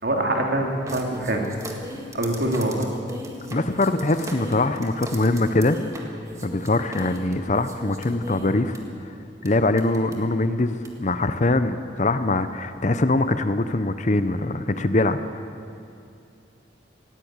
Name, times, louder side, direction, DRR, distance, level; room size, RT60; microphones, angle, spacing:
voice 1, 0.0-1.5 2.1-2.9, right 1 dB, 55° right, 1 dB, 2.7 m, -24 dB
sound 1, 0.9-8.8 9.5-9.6 9.8-10.1 10.8-10.9, equal, 15° right, 1.8 m, -38 dB
voice 2, 3.5-5.8 6.4-9.1 9.4-15.2, left 2 dB, 40° left, 11 dB, 0.7 m, -23 dB
19.0 x 16.0 x 8.8 m, 2.5 s
head